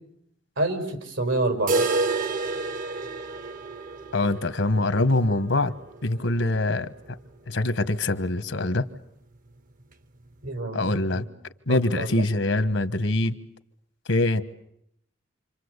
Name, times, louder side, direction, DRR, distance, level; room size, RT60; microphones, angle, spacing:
voice 1, 0.6-1.8 10.4-11.3 11.7-12.2, right 2 dB, 80° right, 6 dB, 5.5 m, -28 dB
sound 1, 1.7-7.5 7.8-7.9 8.2-8.3 8.8-8.9 9.8-9.9, right 3 dB, 45° right, 1.1 m, -30 dB
voice 2, 4.1-5.7 6.0-6.9 7.5-8.8 10.7-11.2 11.7-13.3 14.1-14.4, left 2 dB, 75° left, 12 dB, 1.4 m, -24 dB
28.5 x 25.0 x 8.2 m, 0.74 s
head